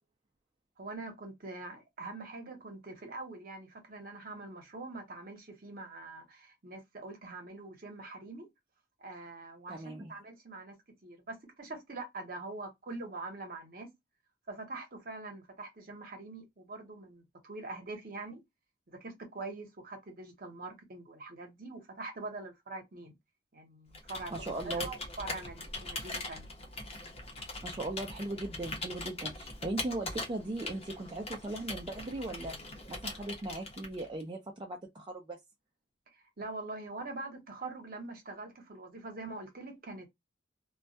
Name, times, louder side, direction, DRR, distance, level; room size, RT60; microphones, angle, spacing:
voice 1, 0.8-8.5 9.0-10.8 11.0-13.9 14.5-18.4 18.9-23.2 23.5-24.3 24.6-26.5 36.1-40.1, right 3 dB, 50° right, 0.8 m, -44 dB
voice 2, 9.7-10.1 24.3-24.9 27.6-32.6 32.9-35.4, right 2 dB, 25° right, 0.4 m, -38 dB
Computer keyboard, 23.9-34.2, left 2 dB, 35° left, 0.7 m, -41 dB
2.2 x 2.1 x 2.6 m
head